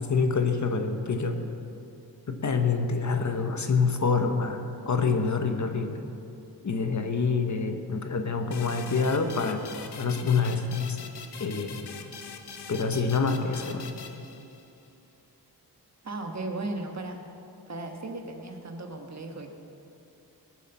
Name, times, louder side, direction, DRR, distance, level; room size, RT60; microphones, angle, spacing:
voice 1, 0.0-1.4 2.3-6.0 6.6-9.6 9.9-11.0 11.4-11.9 12.7-13.9, left 4 dB, 45° left, 6 dB, 1.0 m, -26 dB
sound 1, 8.5-14.9, left 5 dB, 85° left, 1.1 m, -43 dB
voice 2, 16.0-17.2 17.7-19.5, right 2 dB, 40° right, 3 dB, 1.3 m, -36 dB
19.5 x 7.4 x 7.0 m, 2.7 s
wide cardioid pair, 165°, 40 cm